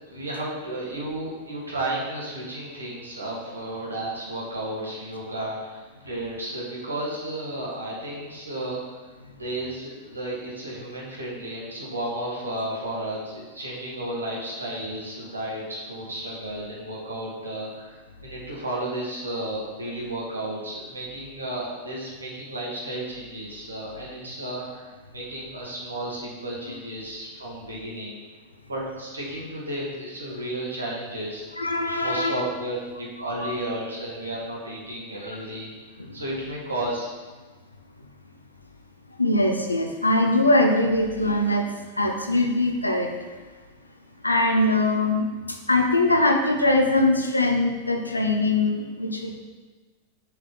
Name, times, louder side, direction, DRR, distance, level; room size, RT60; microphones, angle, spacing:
voice 1, 0.1-9.0 9.3-18.0 18.2-24.9 25.1-28.2 28.7-31.5 32.0-35.7 36.1-37.1, right 1 dB, 75° right, -4 dB, 2.4 m, -33 dB
voice 2, 31.6-32.3 33.4-33.5 36.0-36.1 39.2-43.3 44.2-49.4, left 2 dB, 85° left, 4 dB, 0.8 m, -22 dB
6.8 x 6.0 x 5.4 m, 1.3 s
figure-of-eight pair, 90°, 0 cm